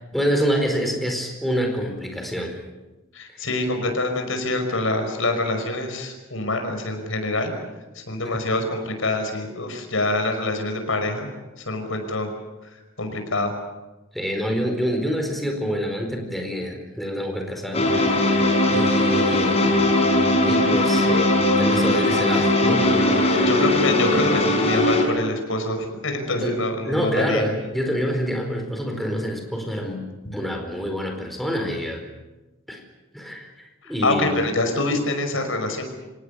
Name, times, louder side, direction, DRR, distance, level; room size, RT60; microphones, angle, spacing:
voice 1, 0.1-2.6 3.3-3.5 8.2-8.4 14.1-18.4 18.7-19.6 20.4-22.9 23.2-23.5 26.4-26.6 26.8-30.0 30.3-32.1 32.7-32.8 33.1-34.4, equal, ahead, 3 dB, 4.6 m, -27 dB
voice 2, 3.1-7.5 8.0-11.3 11.7-12.3 13.0-13.5 23.5-27.4 34.0-35.8, left 2 dB, 75° left, 5 dB, 5.6 m, -25 dB
sound 1, 17.7-25.0, left 1 dB, 30° left, 5.5 m, -19 dB
26.5 x 18.5 x 8.3 m, 1.1 s
head